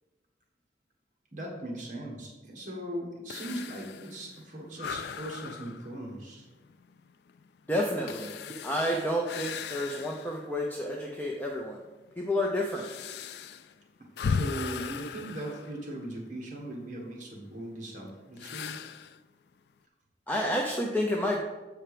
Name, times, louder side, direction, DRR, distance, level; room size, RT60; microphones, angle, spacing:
voice 1, 1.3-6.5 14.2-18.8, right 1 dB, 45° right, -2 dB, 1.4 m, -39 dB
sound 1, 3.3-10.5 10.9-11.0 11.8-16.4 18.4-19.2, left 5 dB, 70° left, 0.3 m, -38 dB
voice 2, 7.7-8.4 8.6-11.8 12.2-12.9 20.3-21.4, left 1 dB, 10° left, -1 dB, 0.6 m, -30 dB
7.7 x 4.5 x 5.0 m, 1.2 s
head